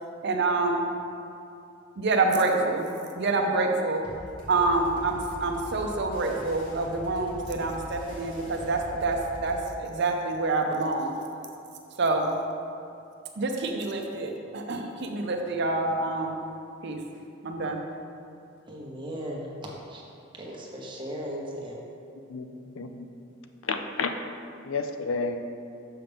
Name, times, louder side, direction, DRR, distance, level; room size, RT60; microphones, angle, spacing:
voice 1, 0.2-0.9 2.0-2.9 3.1-4.0 4.5-11.2 12.0-12.3 13.4-16.4 16.8-17.0 17.4-17.8, right 3 dB, 60° right, 3 dB, 0.6 m, -27 dB
sound 1, 4.0-9.7, right 1 dB, 25° left, 1.5 m, -42 dB
voice 2, 18.7-19.4 19.9-20.1 20.3-21.7, equal, 25° right, -3 dB, 1.0 m, -37 dB
voice 3, 22.8-23.1 23.6-24.1 24.6-25.4, left 4 dB, 85° left, 7 dB, 0.5 m, -30 dB
6.7 x 5.7 x 3.4 m, 2.6 s
head